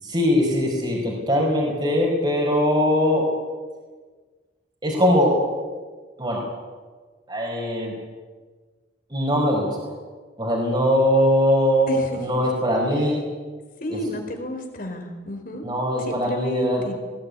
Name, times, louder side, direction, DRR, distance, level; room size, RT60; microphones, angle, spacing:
voice 1, 0.0-3.2 4.8-5.3 6.2-6.4 7.3-7.9 9.1-9.7 10.4-13.2 13.9-14.0 15.6-16.8, equal, 25° right, -3 dB, 4.9 m, -21 dB
voice 2, 11.9-12.4 13.8-15.6 16.0-16.9, left 1 dB, 50° left, 5 dB, 4.6 m, -32 dB
20.5 x 19.0 x 9.8 m, 1.4 s
head